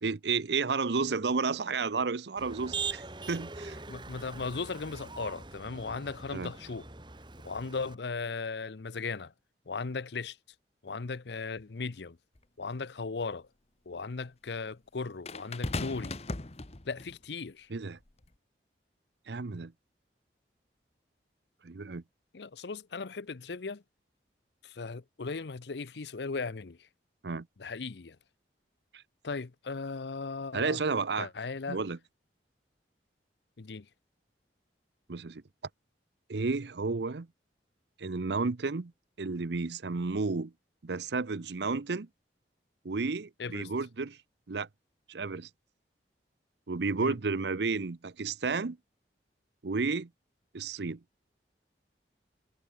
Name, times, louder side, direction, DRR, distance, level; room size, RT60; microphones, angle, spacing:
voice 1, 0.0-3.8 6.3-6.5 17.7-18.0 19.3-19.7 21.6-22.0 27.2-27.5 30.5-31.3 31.7-32.0 35.1-35.4 36.3-37.3 38.0-38.9 39.2-40.5 40.8-42.1 42.8-44.2 44.5-44.7 45.1-45.5 46.7-48.8 49.6-50.1 50.5-51.0, right 4 dB, 75° right, 0.7 m, -32 dB
Motor vehicle (road), 2.4-7.9, right 4 dB, 25° right, 2.3 m, -41 dB
voice 2, 3.9-6.9 7.4-9.3 9.7-10.4 10.8-12.2 12.6-13.5 13.9-16.2 16.8-17.7 22.3-23.8 24.6-26.9 27.6-28.2 29.2-30.8 31.2-31.8 33.6-33.9 43.4-43.7 47.0-47.1, left 4 dB, 75° left, 0.7 m, -37 dB
sound 1, 12.4-12.5 15.3-17.2 18.1-18.3, left 2 dB, 35° left, 1.2 m, -37 dB
head